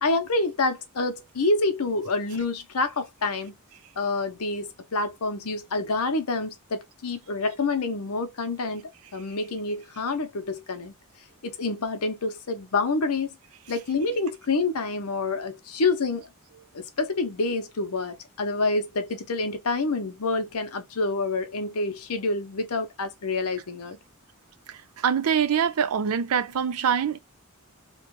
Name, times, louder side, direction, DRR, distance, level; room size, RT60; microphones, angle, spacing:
voice 1, 0.0-3.5 4.0-10.9 11.4-13.3 13.7-16.3 16.7-24.0, left 3 dB, 85° left, 0.8 m, -27 dB
voice 2, 25.0-27.2, right 7 dB, 80° right, 0.5 m, -24 dB
3.0 x 2.3 x 3.0 m
head